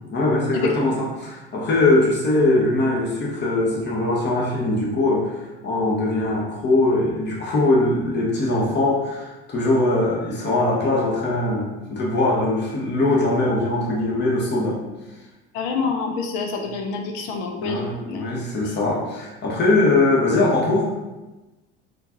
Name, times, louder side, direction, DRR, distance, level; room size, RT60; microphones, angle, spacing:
voice 1, 0.1-14.8 17.6-20.9, left 2 dB, 35° left, -4 dB, 1.0 m, -21 dB
voice 2, 15.5-18.2, left 4 dB, 75° left, 3 dB, 0.7 m, -27 dB
3.6 x 2.5 x 2.9 m, 1.1 s
hypercardioid pair, 70°, 31 cm